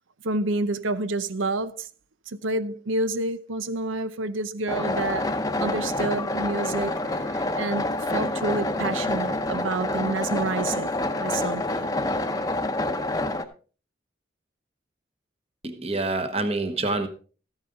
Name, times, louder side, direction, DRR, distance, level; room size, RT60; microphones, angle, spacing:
voice 1, 0.2-1.9 2.3-5.3 5.6-10.9 11.2-11.9, right 2 dB, 90° right, 0.7 m, -29 dB
sound 1, 4.7-13.4, left 2 dB, 20° left, 0.7 m, -27 dB
voice 2, 15.6-17.1, right 2 dB, 30° right, 1.0 m, -27 dB
13.5 x 9.0 x 3.8 m
head